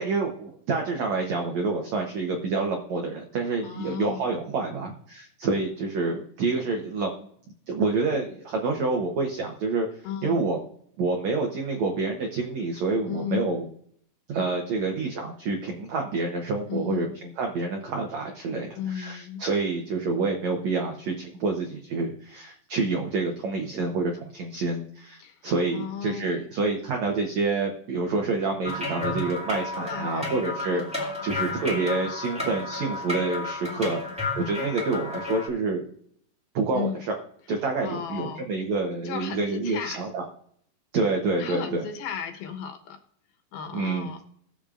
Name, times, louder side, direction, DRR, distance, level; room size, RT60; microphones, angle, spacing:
voice 1, 0.0-7.1 7.7-9.9 10.2-10.6 11.0-13.7 14.3-30.8 31.2-34.0 34.4-35.8 36.5-37.2 37.5-40.2 40.9-41.8 43.7-44.2, right 3 dB, 85° right, 2 dB, 1.5 m, -28 dB
voice 2, 3.6-4.3 10.0-10.4 13.1-13.5 16.7-17.1 18.8-19.4 25.2-26.5 29.8-30.4 30.7-31.2 33.7-34.1 36.7-37.0 37.6-38.5 39.0-40.1 41.4-43.0 43.5-44.2, left 8 dB, 70° left, 6 dB, 2.7 m, -35 dB
sound 1, 28.6-35.5, left 2 dB, 5° right, 0.6 m, -32 dB
21.0 x 7.1 x 2.5 m, 0.65 s
omnidirectional pair, 4.8 m